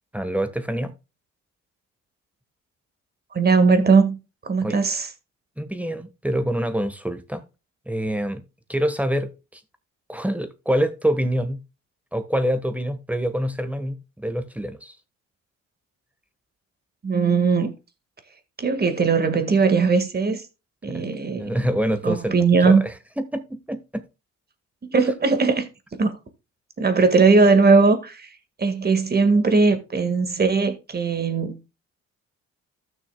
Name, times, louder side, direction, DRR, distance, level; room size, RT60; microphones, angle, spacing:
voice 1, 0.1-0.9 4.6-4.8 5.6-7.4 7.9-8.4 8.7-9.6 10.1-11.6 12.1-14.9 20.9-21.0 21.4-22.3 22.6-22.8 23.2-24.0, equal, 5° right, 1.4 m, -26 dB
voice 2, 3.3-5.1 17.0-17.7 18.6-20.4 20.8-21.6 22.0-22.8 24.9-25.7 26.0-26.2 26.8-28.3 28.6-31.6, right 4 dB, 30° right, 1.9 m, -19 dB
14.5 x 6.3 x 2.3 m
cardioid pair, 90°, 30 cm